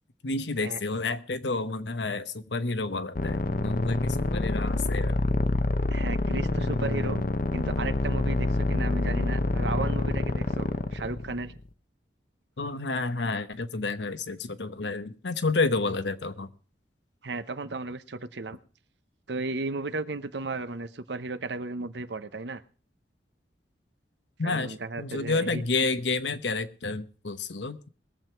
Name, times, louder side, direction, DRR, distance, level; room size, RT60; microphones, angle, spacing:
voice 1, 0.2-5.2 12.6-16.5 24.4-27.9, left 3 dB, 85° left, 12 dB, 1.0 m, -30 dB
sound 1, 3.1-11.6, left 2 dB, 50° left, 0.8 m, -27 dB
voice 2, 5.9-7.2 7.5-11.6 17.2-18.6 19.3-22.6 24.4-25.6, right 3 dB, 80° right, 13 dB, 0.9 m, -34 dB
21.5 x 7.8 x 4.5 m, 0.37 s
head